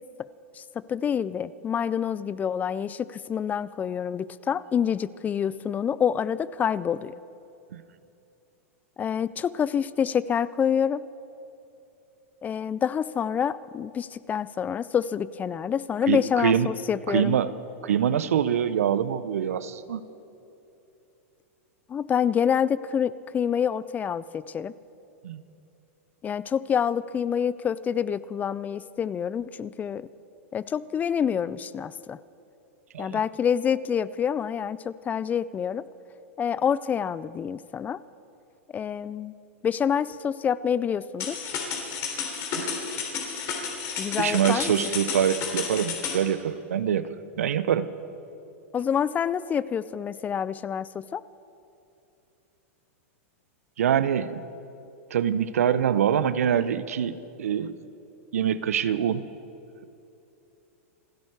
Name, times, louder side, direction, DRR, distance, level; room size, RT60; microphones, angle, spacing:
voice 1, 0.9-7.1 9.0-11.0 12.4-17.4 21.9-24.7 26.2-30.1 30.5-32.2 33.0-35.9 36.4-38.0 38.7-39.3 39.6-41.5 44.0-44.7 48.7-51.2, left 8 dB, 20° left, 19 dB, 0.4 m, -27 dB
voice 2, 16.1-16.7 17.1-17.5 17.8-20.0 25.2-25.4 32.9-33.2 42.5-42.7 44.2-47.1 47.4-47.9 53.8-54.4 55.1-57.8 58.3-59.2, right 9 dB, 80° right, 15 dB, 0.7 m, -24 dB
sound 1, 41.2-46.2, left 6 dB, 40° left, 3.3 m, -32 dB
28.5 x 10.5 x 4.8 m, 2.8 s
hypercardioid pair, 120°, 8 cm